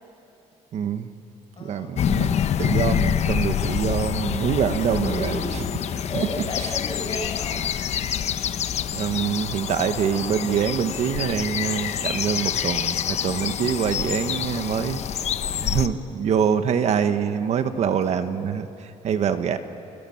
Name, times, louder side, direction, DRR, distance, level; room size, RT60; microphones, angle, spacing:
voice 1, 0.7-1.1 1.6-5.4 6.1-6.3 6.6-6.7 8.9-15.0 15.6-18.7 19.0-19.6, right 7 dB, 60° right, 9 dB, 1.4 m, -25 dB
voice 2, 1.6-2.4 4.9-7.7, left 2 dB, 40° left, 2 dB, 5.8 m, -34 dB
sound 1, 2.0-15.9, left 9 dB, 60° left, 1.0 m, -26 dB
29.0 x 28.0 x 7.3 m, 2.8 s
cardioid pair, 125°, 13 cm